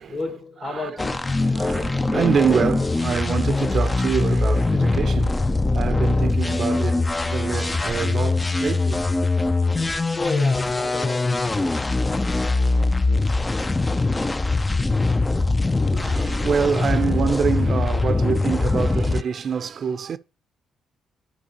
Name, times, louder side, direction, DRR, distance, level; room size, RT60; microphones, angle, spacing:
voice 1, 0.1-1.4 10.1-11.7, left 3 dB, 45° left, 1.7 m, -32 dB
voice 2, 0.6-0.9 1.4-9.3 15.9-20.2, right 7 dB, 55° right, 0.5 m, -26 dB
sound 1, 1.0-19.2, left 3 dB, 20° left, 0.4 m, -22 dB
11.5 x 5.2 x 2.9 m
cardioid pair, 90°, 0 cm